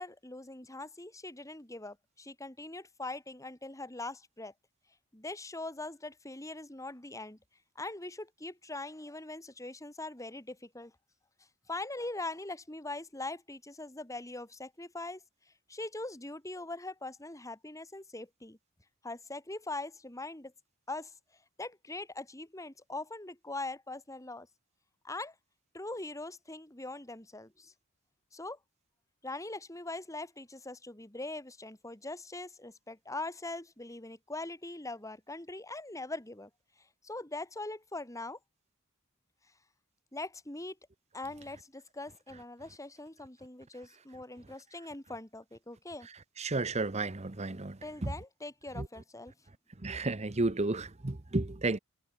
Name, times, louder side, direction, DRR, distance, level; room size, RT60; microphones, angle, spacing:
voice 1, 0.0-4.5 5.1-7.4 7.8-10.9 11.7-15.2 15.7-18.6 19.0-20.5 20.9-21.1 21.6-24.5 25.0-25.3 25.7-27.7 28.3-28.6 29.2-36.5 37.0-38.4 40.1-40.8 41.1-46.1 47.8-49.3, left 2 dB, 15° left, 2.2 m, -42 dB
voice 2, 46.4-48.1 48.8-48.9 49.8-51.8, right 2 dB, 30° right, 0.9 m, -32 dB
head